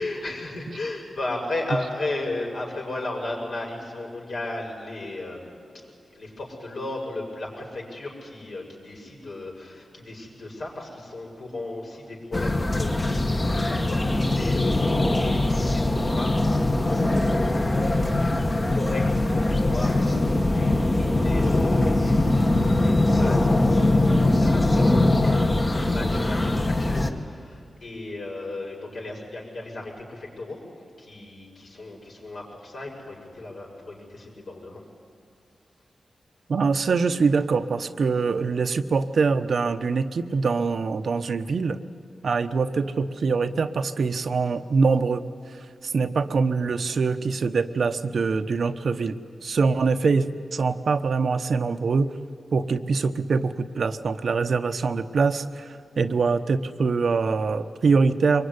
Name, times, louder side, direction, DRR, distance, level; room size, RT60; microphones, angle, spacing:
voice 1, 0.0-13.2 13.5-18.4 18.7-30.6 31.0-34.8, left 2 dB, 65° left, 0 dB, 6.6 m, -35 dB
sound 1, 12.3-27.1, left 2 dB, 30° left, 1.7 m, -22 dB
voice 2, 36.5-41.8 42.2-45.2 45.8-49.1 49.4-50.3 50.5-52.1 52.5-58.5, right 4 dB, 65° right, 9 dB, 1.0 m, -24 dB
24.5 x 22.5 x 9.8 m, 2.4 s
wide cardioid pair, 110°, 0 cm